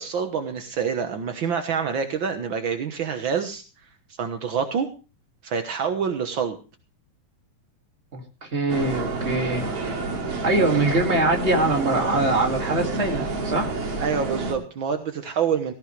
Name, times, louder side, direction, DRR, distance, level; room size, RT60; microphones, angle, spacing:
voice 1, 0.0-3.6 4.2-4.9 5.4-6.6 14.0-15.7, right 6 dB, 70° right, 6 dB, 1.1 m, -26 dB
voice 2, 8.1-9.6 10.4-13.7, right 2 dB, 20° right, 2 dB, 2.1 m, -23 dB
sound 1, 8.7-14.5, right 3 dB, 45° right, 3.0 m, -29 dB
17.0 x 14.5 x 3.2 m, 0.32 s
omnidirectional pair, 4.0 m